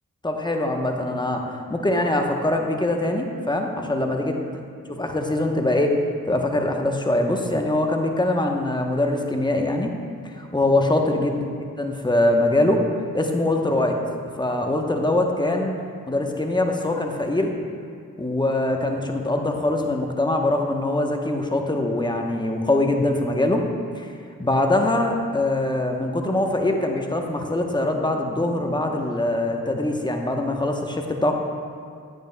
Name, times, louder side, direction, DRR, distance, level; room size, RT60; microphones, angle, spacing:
voice 1, 0.2-1.4 1.7-4.4 5.0-6.0 6.2-9.9 10.2-11.4 11.8-12.8 13.1-13.9 14.4-15.8 16.1-17.5 18.2-23.6 24.0-24.1 24.4-31.3, left 1 dB, 15° left, 3 dB, 0.9 m, -23 dB
9.0 x 8.0 x 2.2 m, 2.2 s
cardioid pair, 45°, 34 cm